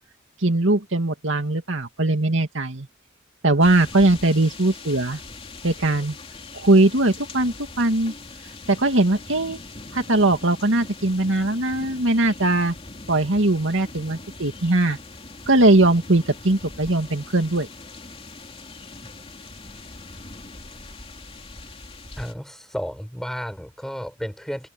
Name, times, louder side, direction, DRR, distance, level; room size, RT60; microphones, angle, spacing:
voice 1, 0.4-2.9 3.4-5.2 5.6-6.2 6.5-8.1 8.7-9.6 9.9-12.7 13.1-15.0 15.5-17.7, right 2 dB, 70° right, 2.4 m, -20 dB
sound 1, 3.6-22.3, left 3 dB, 30° left, 3.2 m, -41 dB
voice 2, 22.2-24.7, equal, ahead, 6.3 m, -32 dB
head